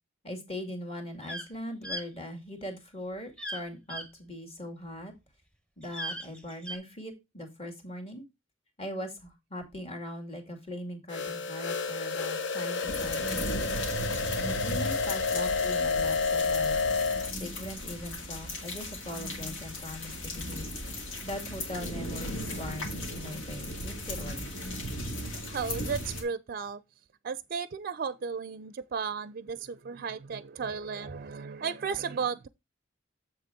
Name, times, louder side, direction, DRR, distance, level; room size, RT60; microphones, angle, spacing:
voice 1, 0.2-5.1 5.8-8.3 8.8-13.7 14.2-16.8 17.4-20.7 21.2-24.5, left 1 dB, 30° left, 2.3 m, -40 dB
sound 1, 1.2-1.5 1.8-2.1 3.4-3.6 3.9-4.0 5.8-6.8, equal, 5° left, 1.0 m, -37 dB
sound 2, 11.1-17.3, left 4 dB, 65° left, 0.9 m, -30 dB
sound 3, 12.9-26.2, left 1 dB, 80° left, 2.2 m, -37 dB
voice 2, 25.5-26.8 27.2-32.5, right 6 dB, 50° right, 0.4 m, -34 dB
7.3 x 6.6 x 3.6 m
head